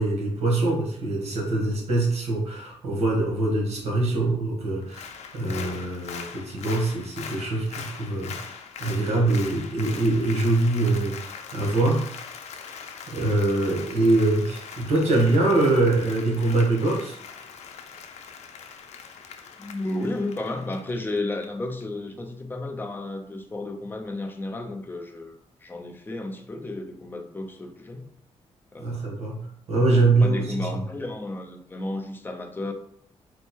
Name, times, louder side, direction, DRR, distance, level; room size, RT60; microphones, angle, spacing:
voice 1, 0.0-12.0 12.5-12.7 13.1-17.2 28.8-30.8, right 2 dB, 70° right, -1 dB, 1.4 m, -24 dB
Applause, 4.8-21.5 21.8-21.9, left 6 dB, 85° left, 0.5 m, -41 dB
voice 2, 19.6-28.1 28.7-29.0 29.9-32.7, left 2 dB, 20° left, 4 dB, 0.5 m, -33 dB
4.4 x 2.2 x 4.4 m, 0.68 s
wide cardioid pair, 150°, 11 cm